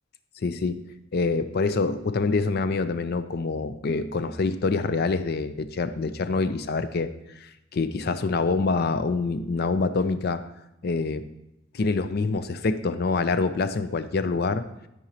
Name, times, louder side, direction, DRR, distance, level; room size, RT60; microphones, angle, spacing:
voice 1, 0.4-0.8 1.1-7.1 7.4-10.4 10.8-11.2 11.7-14.6, left 4 dB, 50° left, 11 dB, 0.5 m, -26 dB
12.5 x 4.9 x 2.9 m, 0.87 s
head